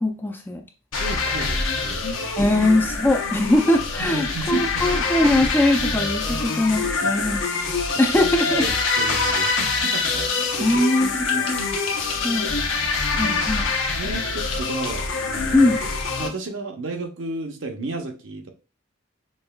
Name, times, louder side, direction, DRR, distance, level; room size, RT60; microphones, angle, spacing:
voice 1, 0.0-0.6 2.4-7.4 8.0-8.6 10.6-11.6 12.2-12.5 13.2-13.6 15.5-15.8, left 1 dB, 10° left, 4 dB, 0.3 m, -21 dB
sound 1, 0.9-16.3, left 4 dB, 75° left, 0.7 m, -25 dB
voice 2, 0.9-2.1 2.4-2.6 4.0-5.1 6.3-6.4 6.8-7.1 7.9-8.0 8.5-10.3 10.5-10.7 11.3-11.9 13.1-13.4 13.9-15.7 16.2-18.5, right 3 dB, 65° right, 4 dB, 0.7 m, -33 dB
sound 2, 7.3-11.0 11.3-12.4 12.8-13.9 14.5-15.0, left 2 dB, 25° left, 0.9 m, -39 dB
5.3 x 2.3 x 2.2 m, 0.33 s
head